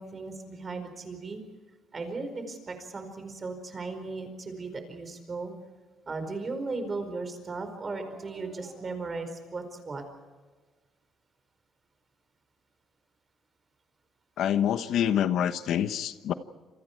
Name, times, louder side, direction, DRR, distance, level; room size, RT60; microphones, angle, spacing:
voice 1, 0.0-1.4 1.9-5.5 6.1-10.0, right 3 dB, 25° right, 7 dB, 4.7 m, -36 dB
voice 2, 14.4-16.3, left 9 dB, 65° left, 11 dB, 1.1 m, -26 dB
29.0 x 28.0 x 4.6 m, 1.4 s
cardioid pair, 150°, 0 cm